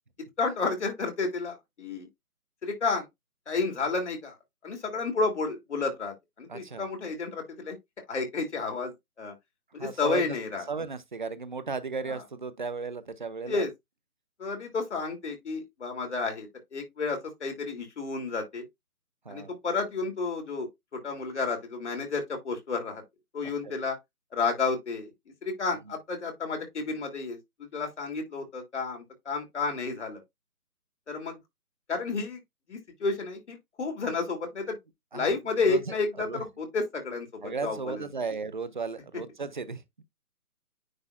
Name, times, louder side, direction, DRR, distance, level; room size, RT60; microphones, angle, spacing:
voice 1, 0.4-2.1 2.6-3.0 3.5-4.3 4.6-7.8 8.1-8.9 9.2-9.3 9.7-10.6 12.1-12.2 13.5-13.7 14.4-18.6 19.3-23.0 23.3-24.0 24.3-25.1 25.4-30.2 31.1-31.4 31.9-32.4 32.7-34.8 35.1-38.0, left 4 dB, 50° left, 2.9 m, -31 dB
voice 2, 6.5-6.8 9.8-10.4 10.7-13.7 19.3-19.5 23.6-23.7 35.1-35.4 35.6-36.0 36.2-36.4 37.4-40.0, right 4 dB, 35° right, 0.6 m, -35 dB
9.6 x 4.0 x 2.5 m
figure-of-eight pair, 160°, 45 cm